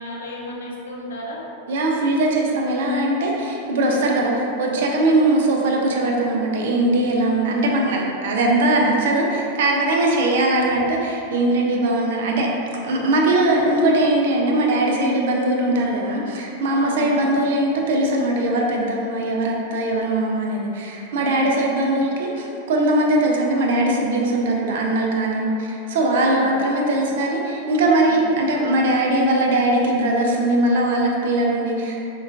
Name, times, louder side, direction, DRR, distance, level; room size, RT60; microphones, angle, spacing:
voice 1, 0.0-1.4 11.5-11.8 16.7-17.3 21.1-21.6 25.5-25.6 25.9-26.7 28.0-28.2, left 1 dB, 65° left, -3 dB, 0.5 m, -34 dB
voice 2, 1.7-12.5 12.8-32.0, right 1 dB, 55° right, -1 dB, 0.4 m, -20 dB
3.5 x 2.2 x 2.6 m, 2.8 s
figure-of-eight pair, 90°, 0 cm